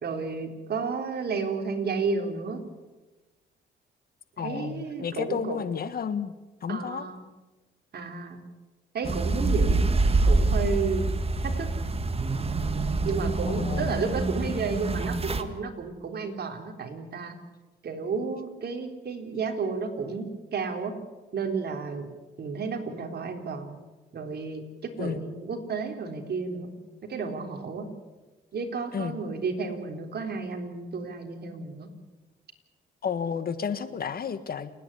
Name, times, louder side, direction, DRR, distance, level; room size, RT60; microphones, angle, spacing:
voice 1, 0.0-2.6 4.4-5.6 6.7-7.2 7.9-8.4 8.9-9.8 10.2-11.1 11.4-11.7 13.0-17.4 17.8-20.9 21.3-22.1 22.4-23.8 24.1-24.6 25.0-26.7 27.1-27.9 28.5-31.9, right 4 dB, 55° right, 4 dB, 3.7 m, -32 dB
voice 2, 4.4-6.3 6.6-7.1 13.5-14.0 25.0-25.2 28.9-29.2 33.0-34.7, left 7 dB, 50° left, 12 dB, 1.7 m, -31 dB
sound 1, 9.0-15.4, right 2 dB, 30° right, 1.7 m, -26 dB
29.0 x 10.5 x 9.9 m, 1.1 s
cardioid pair, 90°, 20 cm